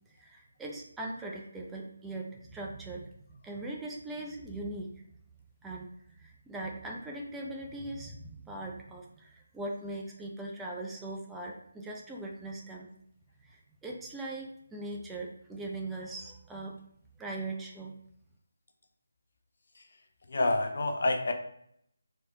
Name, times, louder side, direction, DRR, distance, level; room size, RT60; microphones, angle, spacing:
voice 1, 0.1-3.0 3.4-4.9 5.6-12.9 13.4-16.7 17.2-17.9, right 2 dB, 5° right, -1 dB, 0.5 m, -40 dB
voice 2, 20.3-21.3, left 2 dB, 50° left, 5 dB, 0.7 m, -28 dB
4.2 x 3.3 x 3.6 m, 0.70 s
figure-of-eight pair, 150°, 0 cm